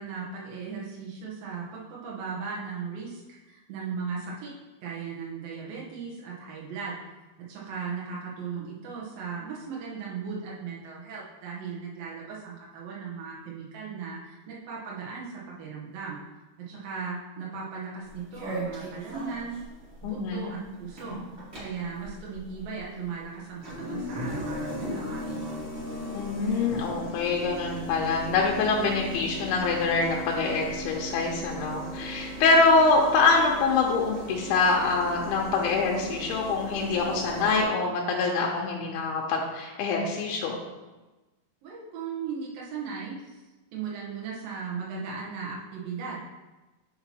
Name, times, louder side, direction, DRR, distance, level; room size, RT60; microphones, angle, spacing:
voice 1, 0.0-4.5 4.8-7.0 7.4-16.2 16.6-19.6 20.0-21.1 21.6-25.4 41.6-43.4 43.7-46.2, right 5 dB, 70° right, -6 dB, 2.9 m, -37 dB
sound 1, 18.0-37.6, equal, 30° right, 1.6 m, -38 dB
voice 2, 20.0-20.5 26.1-40.6, left 4 dB, 85° left, -1 dB, 2.7 m, -25 dB
8.6 x 5.7 x 3.0 m, 1.1 s
omnidirectional pair, 4.4 m